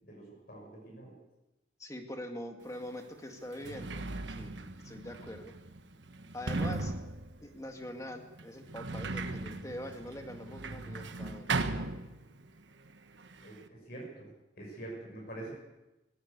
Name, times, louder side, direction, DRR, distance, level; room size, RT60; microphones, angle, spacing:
voice 1, 0.0-1.2 13.4-15.5, right 2 dB, 55° left, -2 dB, 6.3 m, -46 dB
voice 2, 1.8-5.5 6.3-7.0 7.4-11.5, left 1 dB, 15° left, 4 dB, 2.0 m, -43 dB
Sliding door, 2.7-2.8 3.4-12.6 12.9-13.7, right 3 dB, 75° right, 1.3 m, -38 dB
18.5 x 17.5 x 8.3 m, 0.98 s
head